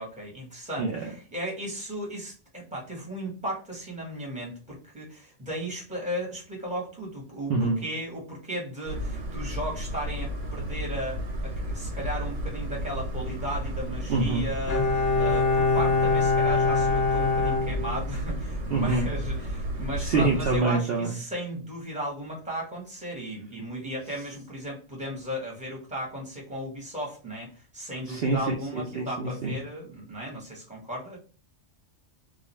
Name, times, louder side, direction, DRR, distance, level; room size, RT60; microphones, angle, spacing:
voice 1, 0.0-14.9 15.1-31.2, equal, 5° right, -3 dB, 0.9 m, -35 dB
voice 2, 7.5-7.8 14.1-14.4 18.7-19.1 20.0-21.1 28.1-28.4 28.7-29.5, right 3 dB, 60° right, -1 dB, 0.7 m, -25 dB
sound 1, 8.8-20.6, equal, 80° right, 1.1 m, -33 dB
Bowed string instrument, 14.7-18.4 18.7-18.8, left 4 dB, 60° left, 0.4 m, -24 dB
2.4 x 2.3 x 2.9 m, 0.38 s
omnidirectional pair, 1.3 m